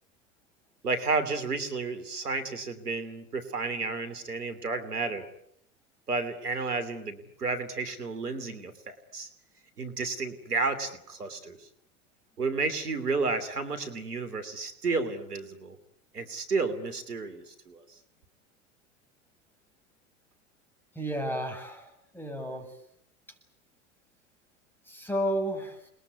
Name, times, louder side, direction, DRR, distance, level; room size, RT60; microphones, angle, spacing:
voice 1, 0.8-5.2 6.1-9.3 9.8-11.7 12.4-15.8 16.1-17.8, right 4 dB, 90° right, 11 dB, 3.1 m, -32 dB
voice 2, 20.9-22.7 24.9-25.9, equal, 5° left, 4 dB, 7.9 m, -32 dB
29.0 x 21.5 x 9.6 m, 0.74 s
hypercardioid pair, 85°, 45 cm